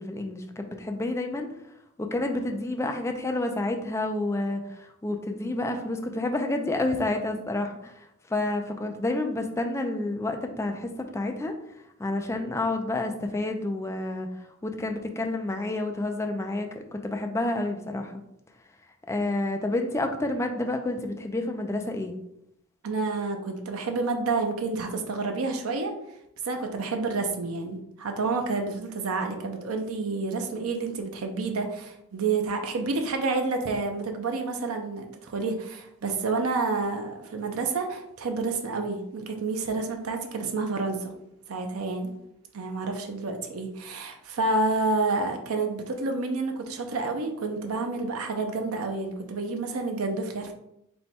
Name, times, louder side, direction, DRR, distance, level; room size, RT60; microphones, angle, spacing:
voice 1, 0.0-1.5 2.0-11.5 12.0-18.2 19.1-22.1, left 2 dB, 15° left, 4 dB, 0.4 m, -29 dB
voice 2, 22.8-25.9 26.4-41.1 41.5-42.1 42.5-50.5, right 3 dB, 85° right, 4 dB, 0.6 m, -29 dB
4.4 x 2.2 x 4.1 m, 0.79 s
head